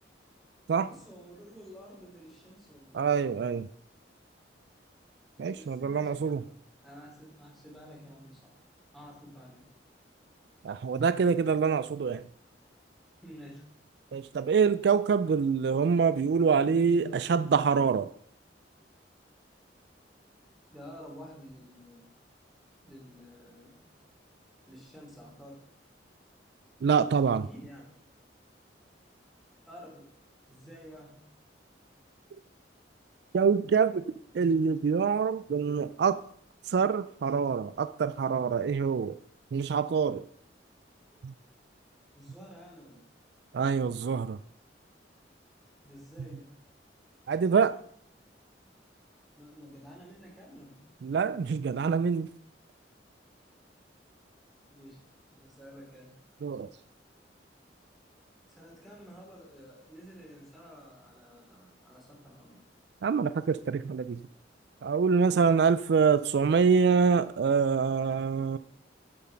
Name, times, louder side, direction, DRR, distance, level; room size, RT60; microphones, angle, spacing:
voice 1, 0.7-3.6 5.5-8.5 8.9-9.7 13.2-13.7 20.7-22.1 22.8-23.8 24.7-25.6 27.3-27.9 29.7-30.1 30.5-31.3 42.1-43.1 45.8-46.5 49.4-50.8 54.7-55.0 55.3-56.1 58.5-62.6 65.3-65.6, equal, ahead, -3 dB, 3.0 m, -50 dB
voice 2, 2.9-3.7 5.4-6.4 10.6-12.2 14.1-18.1 26.8-27.5 33.3-34.1 34.3-36.2 36.7-39.2 39.5-40.3 41.2-41.3 43.5-44.4 47.3-47.8 51.0-52.3 56.4-56.7 63.0-64.2 64.8-68.6, right 6 dB, 65° right, 14 dB, 0.3 m, -25 dB
7.8 x 7.4 x 5.8 m, 0.62 s
head